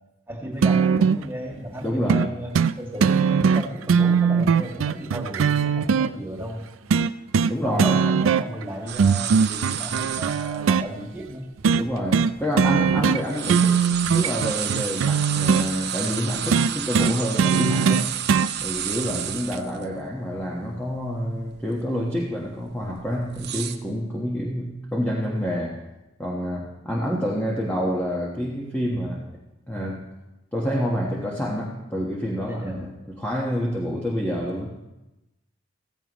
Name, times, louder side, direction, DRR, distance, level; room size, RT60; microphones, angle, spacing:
voice 1, 0.3-6.6 7.6-11.5 19.1-19.2 32.5-32.9, right 1 dB, 10° right, -1 dB, 2.1 m, -34 dB
sound 1, 0.6-1.2 2.1-2.3 2.5-2.7 3.0-6.1 6.9-7.5 7.8-8.6 9.0-10.9 11.6-11.8 12.1-12.3 12.6-13.2 13.5-15.7 16.5-18.5 19.5-19.6, right 6 dB, 80° right, 0.4 m, -20 dB
voice 2, 1.8-2.3 7.4-8.0 11.8-13.8 14.1-18.1 18.6-25.8 26.2-29.3 29.7-30.1 30.5-34.8, equal, 10° left, -3 dB, 1.2 m, -28 dB
sound 2, 8.9-10.6 11.2-11.3 11.9-12.9 13.2-19.8 20.2-20.3 20.7-21.1 21.5-21.8 22.4-23.8, right 10 dB, 55° right, 0.8 m, -31 dB
16.0 x 14.5 x 3.1 m, 0.99 s
head